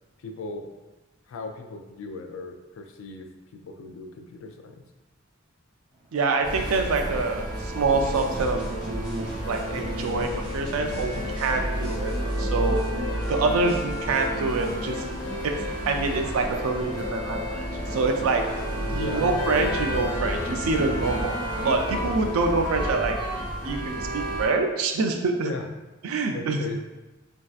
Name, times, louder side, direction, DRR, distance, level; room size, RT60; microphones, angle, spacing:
voice 1, 0.2-0.7 1.3-4.8 18.9-19.3 25.4-25.7 26.3-26.8, left 3 dB, 70° left, 4 dB, 0.3 m, -37 dB
sound 1, 6.0-22.6, right 2 dB, 30° right, 0.5 m, -38 dB
voice 2, 6.1-12.9 13.3-15.0 15.4-15.6 15.9-17.4 17.9-18.5 18.9-23.2 23.6-25.5 26.0-26.6, right 3 dB, 85° right, 4 dB, 0.4 m, -26 dB
sound 2, 6.4-24.5, equal, 20° left, 1.0 m, -31 dB
sound 3, 7.9-11.5 11.8-12.4 12.7-12.9 13.1-13.3 13.7-15.4, equal, 5° right, 1.3 m, -40 dB
3.1 x 2.6 x 2.3 m, 1.1 s
head